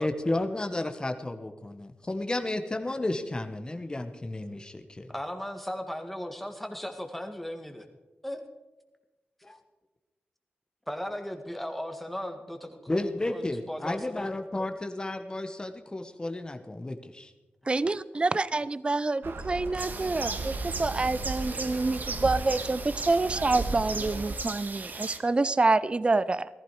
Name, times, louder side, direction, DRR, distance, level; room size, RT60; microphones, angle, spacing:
voice 1, 0.0-5.1 9.4-9.6 12.9-17.3, left 2 dB, 20° left, 7 dB, 1.1 m, -32 dB
voice 2, 5.1-7.9 8.2-8.4 10.9-14.3 25.1-25.2, equal, 5° left, 6 dB, 1.8 m, -37 dB
voice 3, 17.7-20.5 20.8-26.5, right 3 dB, 30° right, 16 dB, 0.5 m, -27 dB
sound 1, 19.2-24.4, right 3 dB, 75° right, 1.4 m, -36 dB
sound 2, 19.8-25.2, right 3 dB, 50° right, 1.3 m, -38 dB
15.5 x 14.5 x 4.8 m, 1.1 s
cardioid pair, 75°, 4 cm